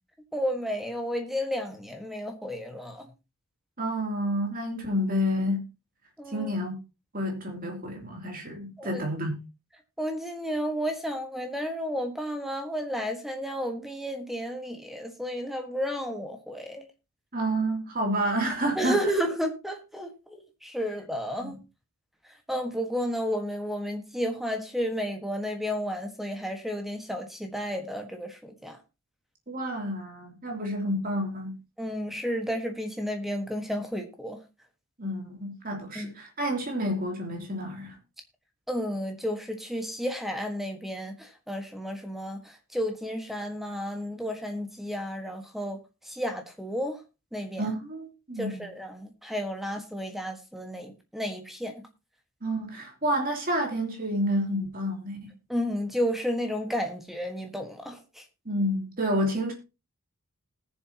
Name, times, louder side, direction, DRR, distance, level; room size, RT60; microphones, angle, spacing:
voice 1, 0.3-3.1 6.2-6.5 8.8-9.0 10.0-16.8 18.7-21.6 22.5-28.8 31.8-34.4 35.9-36.1 38.7-45.8 46.0-47.0 47.3-47.7 48.4-51.8 55.5-58.2, equal, ahead, 4 dB, 1.4 m, -32 dB
voice 2, 3.8-5.6 6.3-6.8 7.1-9.4 17.3-19.1 21.4-21.5 29.5-31.5 35.0-38.0 47.6-48.7 52.4-55.3 58.4-59.5, equal, 40° right, 2 dB, 3.0 m, -29 dB
19.5 x 7.2 x 2.9 m, 0.28 s
head